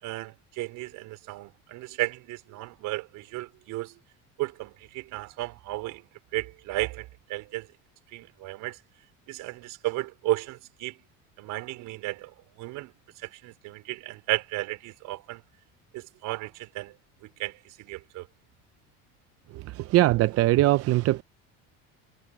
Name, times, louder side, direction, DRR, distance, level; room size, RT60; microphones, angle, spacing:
voice 1, 0.0-3.9 4.4-6.0 6.3-7.7 8.1-8.8 9.3-11.0 11.4-12.9 13.2-15.4 15.9-16.9 17.4-18.3, right 19 dB, 70° right, 4.4 m, -34 dB
voice 2, 19.5-21.2, right 16 dB, 50° right, 0.5 m, -22 dB
cardioid pair, 120°, 33 cm